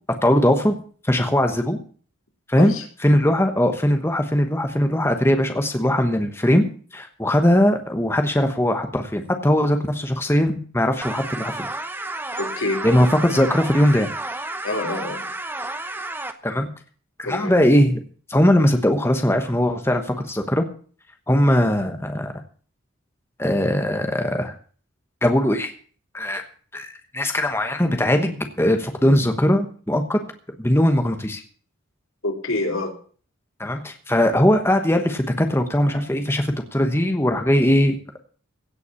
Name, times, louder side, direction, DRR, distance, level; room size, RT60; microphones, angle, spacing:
voice 1, 0.2-0.8 1.0-1.8 2.5-2.7 3.0-6.7 6.9-11.7 12.8-14.1 16.4-16.7 17.2-18.0 18.3-20.7 21.3-22.3 23.4-24.5 25.2-25.7 26.1-26.4 26.7-30.2 30.6-31.4 33.6-38.2, left 1 dB, 10° left, 5 dB, 1.2 m, -20 dB
sound 1, 11.0-16.3, right 2 dB, 10° right, 0.9 m, -31 dB
voice 2, 12.4-12.8 14.6-15.3 17.2-17.5 32.2-32.9, left 2 dB, 85° left, 3 dB, 2.9 m, -26 dB
16.5 x 6.0 x 8.3 m, 0.43 s
head